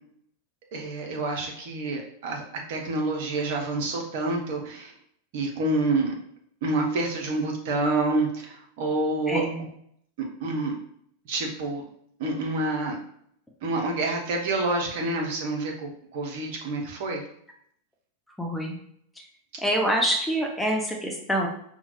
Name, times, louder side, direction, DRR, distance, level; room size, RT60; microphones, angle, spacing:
voice 1, 0.7-4.9 5.3-6.1 6.6-9.4 10.2-10.8 11.3-11.8 12.2-13.0 13.6-17.2, right 2 dB, 50° right, 1 dB, 0.9 m, -28 dB
voice 2, 9.3-9.7 18.4-18.7 19.6-21.5, right 1 dB, 5° left, 0 dB, 0.7 m, -26 dB
5.4 x 2.3 x 3.2 m, 0.68 s
figure-of-eight pair, 90°, 0 cm